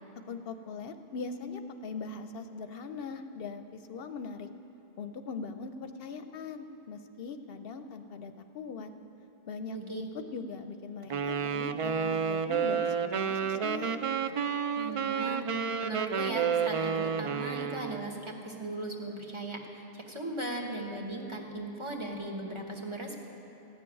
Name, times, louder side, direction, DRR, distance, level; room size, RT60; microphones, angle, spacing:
voice 1, 0.3-4.5 5.0-8.9 9.5-14.1, left 4 dB, 70° left, 8 dB, 0.8 m, -41 dB
voice 2, 9.7-10.0 14.8-23.2, right 1 dB, 30° right, 0 dB, 1.3 m, -38 dB
Wind instrument woodwind instrument, 11.1-18.1, right 6 dB, 60° right, 0.3 m, -30 dB
14.5 x 7.0 x 9.8 m, 2.9 s
omnidirectional pair, 1.1 m